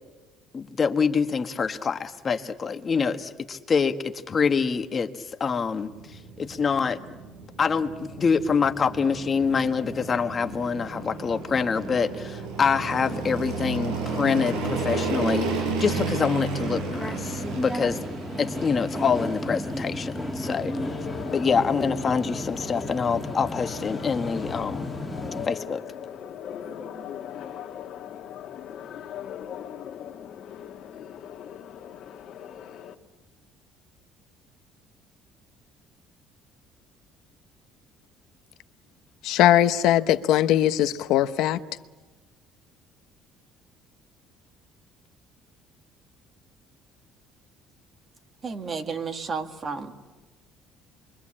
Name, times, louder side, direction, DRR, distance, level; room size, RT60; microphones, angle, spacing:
voice 1, 0.5-5.1 5.4-5.9 6.4-7.0 7.6-18.0 18.4-20.7 21.3-24.9 25.5-25.8, left 5 dB, 30° left, 1.4 m, -25 dB
sound 1, 5.8-25.2, right 4 dB, 85° right, 7.2 m, -34 dB
sound 2, 16.5-25.5, left 1 dB, ahead, 2.1 m, -34 dB
sound 3, 20.7-33.0, left 9 dB, 60° left, 1.8 m, -39 dB
voice 2, 39.2-41.6, left 12 dB, 75° left, 1.0 m, -20 dB
voice 3, 48.4-50.0, right 5 dB, 35° right, 2.1 m, -32 dB
28.0 x 23.5 x 8.7 m
cardioid pair, 120°, 0 cm